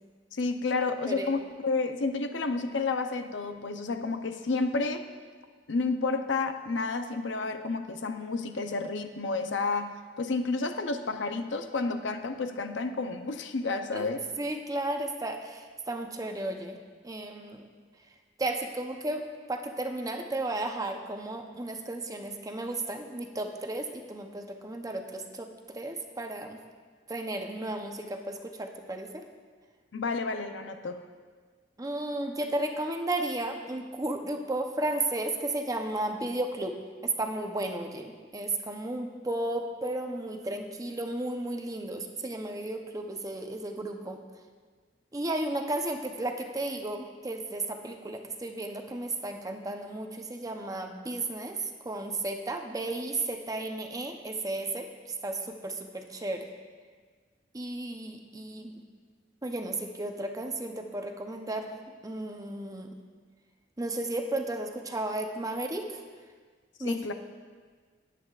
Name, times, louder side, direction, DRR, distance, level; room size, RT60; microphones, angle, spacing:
voice 1, 0.3-5.1 5.7-14.2 29.9-31.0 66.8-67.1, left 3 dB, 90° left, 7 dB, 0.7 m, -30 dB
voice 2, 14.4-16.8 17.0-17.7 18.4-19.2 19.5-25.5 25.7-26.6 27.1-29.2 31.8-36.7 37.0-44.2 45.1-54.9 55.2-56.5 57.5-58.7 59.4-61.7 62.0-62.9 63.8-66.0 66.8-67.1, right 2 dB, 20° right, 4 dB, 0.7 m, -34 dB
18.0 x 8.4 x 2.4 m, 1.5 s
head